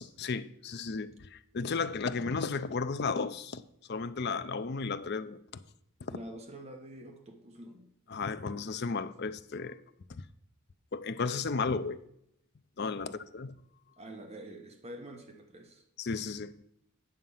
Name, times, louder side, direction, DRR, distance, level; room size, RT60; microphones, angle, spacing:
voice 1, 0.0-3.6 3.9-5.4 6.0-6.1 8.1-9.8 10.9-12.0 12.8-13.5 16.0-16.5, left 4 dB, 50° left, 0.5 m, -34 dB
voice 2, 6.1-7.9 13.0-13.2 14.0-15.8, right 1 dB, 30° right, 1.2 m, -46 dB
9.0 x 6.6 x 5.6 m
head